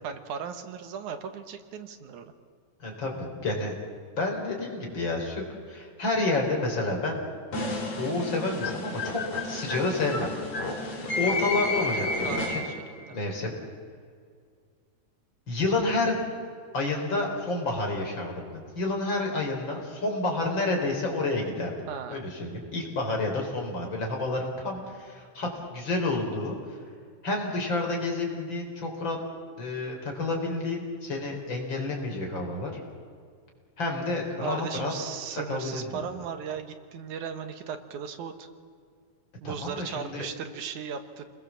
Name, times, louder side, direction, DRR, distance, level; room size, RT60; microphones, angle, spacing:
voice 1, 0.0-2.3 12.2-13.2 21.9-22.2 34.4-38.5 39.4-41.3, right 7 dB, 80° right, 8 dB, 2.8 m, -37 dB
voice 2, 2.8-3.7 4.2-7.2 7.6-10.3 11.1-12.6 13.1-13.5 15.5-16.2 16.7-26.6 27.2-29.2 29.6-32.7 33.8-34.9 35.5-36.0 39.4-40.3, left 2 dB, 40° left, 0 dB, 4.8 m, -29 dB
sound 1, 7.5-12.9, left 2 dB, 65° left, 5.1 m, -31 dB
29.0 x 21.0 x 7.4 m, 2.1 s
omnidirectional pair, 3.4 m